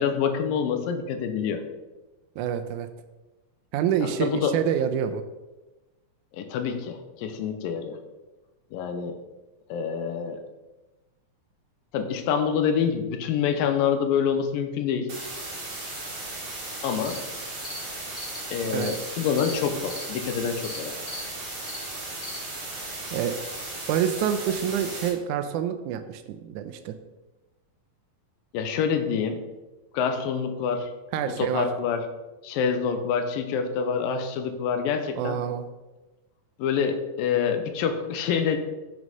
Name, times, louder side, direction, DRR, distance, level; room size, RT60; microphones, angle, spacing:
voice 1, 0.0-1.6 4.0-4.5 6.3-8.0 8.7-9.2 9.7-10.4 11.9-15.1 16.8-17.2 18.5-21.0 28.5-29.5 29.9-30.9 31.4-32.0 32.4-35.4 36.6-38.6, left 7 dB, 85° left, 7 dB, 2.5 m, -26 dB
voice 2, 2.4-2.9 3.7-5.2 18.7-19.0 23.1-23.4 23.9-27.0 31.1-31.7 35.2-35.6, right 9 dB, 85° right, 8 dB, 1.8 m, -27 dB
sound 1, 15.1-25.1, right 2 dB, 40° right, 2.9 m, -36 dB
sound 2, 17.0-17.2 17.6-17.8 18.1-18.4 18.8-18.9 19.4-19.5 19.9-20.0 20.6-20.8 21.1-21.2 21.6-21.8 22.2-22.4, left 2 dB, 30° left, 1.2 m, -39 dB
7.3 x 6.2 x 5.4 m, 1.1 s
omnidirectional pair, 4.1 m